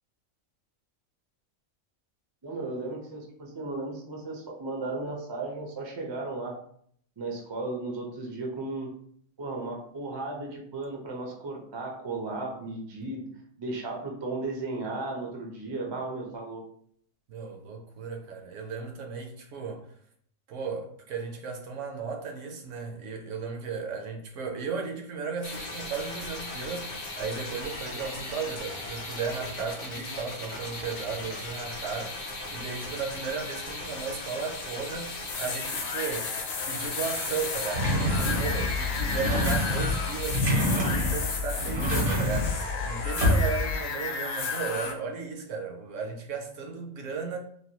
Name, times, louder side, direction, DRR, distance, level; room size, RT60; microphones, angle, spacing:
voice 1, 2.4-6.6 7.2-8.9 9.4-13.3 13.6-16.6, right 2 dB, 45° right, 0.3 m, -35 dB
voice 2, 17.3-19.9 20.5-36.4 36.6-47.4, right 5 dB, 70° right, 0.9 m, -35 dB
sound 1, 25.4-40.4, left 2 dB, 50° left, 0.6 m, -38 dB
sound 2, 35.0-44.9, left 4 dB, 75° left, 1.0 m, -33 dB
sound 3, 37.7-43.7, left 1 dB, 85° right, 1.6 m, -27 dB
3.3 x 2.2 x 2.8 m
omnidirectional pair, 1.4 m